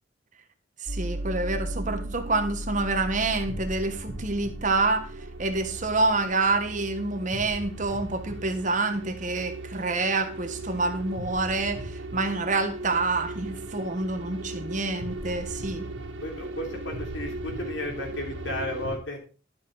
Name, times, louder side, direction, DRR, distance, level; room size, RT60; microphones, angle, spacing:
voice 1, 0.8-5.1 5.4-15.8, right 3 dB, 40° right, 1.3 m, -27 dB
sound 1, 0.9-19.0, right 1 dB, 75° right, 2.1 m, -37 dB
voice 2, 16.2-19.2, left 1 dB, 70° left, 3.1 m, -34 dB
11.5 x 7.5 x 4.0 m
head